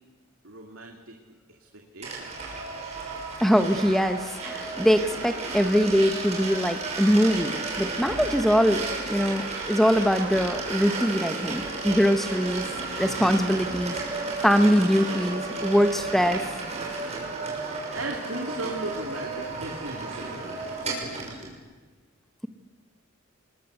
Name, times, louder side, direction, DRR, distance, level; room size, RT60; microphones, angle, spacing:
voice 1, 0.4-1.2 1.9-2.5 17.9-20.7, right 2 dB, 75° right, 2 dB, 2.6 m, -36 dB
sound 1, 2.0-21.5, right 3 dB, 35° right, 6.4 m, -33 dB
voice 2, 3.4-12.6 13.0-14.0 14.4-16.5, equal, ahead, 8 dB, 1.2 m, -23 dB
29.0 x 21.0 x 8.1 m, 1.3 s
head